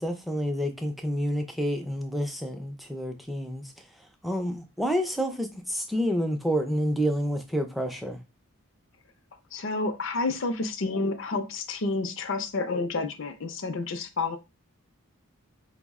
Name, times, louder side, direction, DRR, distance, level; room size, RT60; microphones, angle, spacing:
voice 1, 0.0-3.7 4.2-8.2, equal, ahead, 0.4 m, -29 dB
voice 2, 9.5-14.4, left 3 dB, 55° left, 0.5 m, -29 dB
4.8 x 2.0 x 3.5 m
head